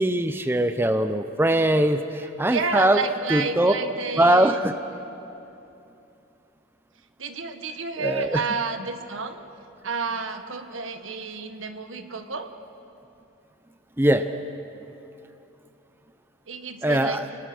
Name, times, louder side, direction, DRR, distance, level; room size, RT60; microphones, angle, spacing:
voice 1, 0.0-3.0 3.3-3.7 4.2-4.7 8.0-8.4 14.0-14.3 16.8-17.2, right 1 dB, 10° right, 9 dB, 0.7 m, -21 dB
voice 2, 2.5-4.6 7.2-9.4 9.8-12.5 16.5-17.2, right 4 dB, 85° right, 7 dB, 1.6 m, -30 dB
29.5 x 22.0 x 6.2 m, 2.8 s
head